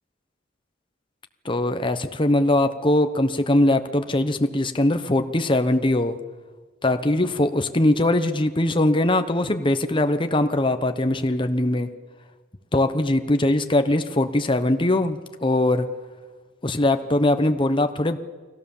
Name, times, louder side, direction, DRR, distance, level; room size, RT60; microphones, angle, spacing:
voice 1, 1.4-6.2 6.8-11.9 12.7-15.9 16.6-18.2, left 1 dB, 25° left, 8 dB, 1.0 m, -21 dB
30.0 x 21.0 x 7.3 m, 1.5 s
head